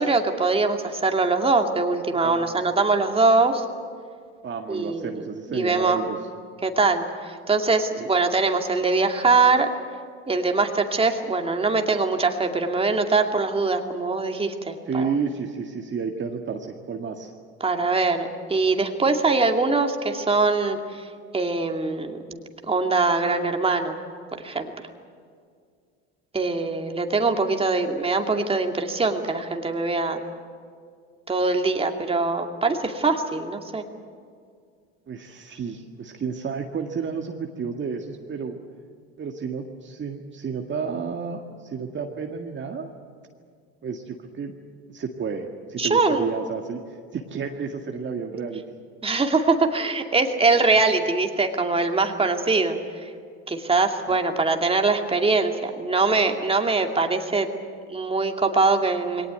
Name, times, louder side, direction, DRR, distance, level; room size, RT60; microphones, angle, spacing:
voice 1, 0.0-3.6 4.7-5.1 5.5-6.0 6.6-9.7 10.3-15.1 17.6-21.0 21.3-22.4 22.7-23.9 24.4-24.7 26.3-30.2 31.3-33.8 45.8-46.3 49.0-52.8 53.5-57.5 57.9-59.3, right 3 dB, 20° right, 4 dB, 2.4 m, -22 dB
voice 2, 2.2-2.6 4.4-6.2 8.0-8.1 14.9-17.3 35.1-38.6 39.2-42.9 43.8-44.5 44.9-48.6 54.1-54.2, right 5 dB, 35° right, 3 dB, 1.9 m, -31 dB
21.5 x 18.5 x 9.3 m, 2.2 s
supercardioid pair, 85°, 31 cm